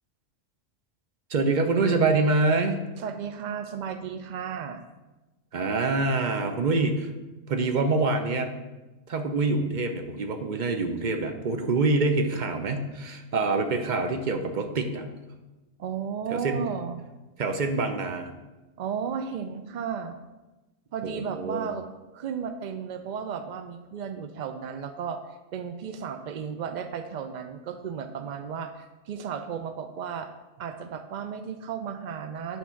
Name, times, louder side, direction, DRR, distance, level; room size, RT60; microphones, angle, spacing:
voice 1, 1.3-2.8 5.5-7.1 7.5-8.5 9.1-15.1 16.3-16.7 17.4-18.3 21.0-21.7, right 3 dB, 45° right, 6 dB, 0.7 m, -25 dB
voice 2, 3.0-4.8 15.8-17.0 18.8-20.2 20.9-21.9 22.1-25.2 25.5-30.3 30.6-32.6, right 7 dB, 75° right, 8 dB, 0.4 m, -34 dB
8.5 x 3.6 x 5.7 m, 1.1 s
omnidirectional pair, 1.3 m